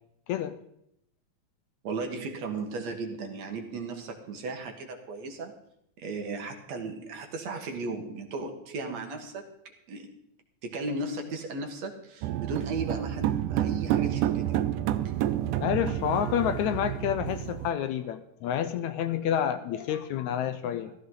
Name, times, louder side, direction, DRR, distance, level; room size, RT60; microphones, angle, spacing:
voice 1, 1.8-5.5 6.0-9.5 9.9-10.2 10.6-14.6, right 3 dB, 60° right, 4 dB, 2.5 m, -36 dB
sound 1, 12.2-17.7, right 12 dB, 80° right, 2.2 m, -29 dB
voice 2, 15.6-20.9, left 10 dB, 75° left, 10 dB, 1.9 m, -29 dB
15.0 x 14.5 x 3.9 m, 0.77 s
omnidirectional pair, 3.7 m